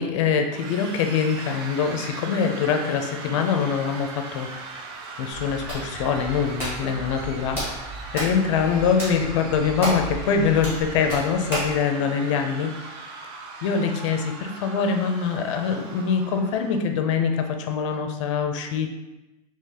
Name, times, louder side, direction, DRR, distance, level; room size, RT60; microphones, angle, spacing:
voice 1, 0.0-4.7 5.2-7.8 8.1-12.8 13.6-18.9, left 6 dB, 50° left, 5 dB, 0.5 m, -24 dB
sound 1, 0.5-16.8, right 3 dB, 35° right, 0.4 m, -39 dB
Hands, 5.3-11.8, equal, 10° right, 1.5 m, -33 dB
3.8 x 2.9 x 2.8 m, 1.0 s
supercardioid pair, 170°, 20 cm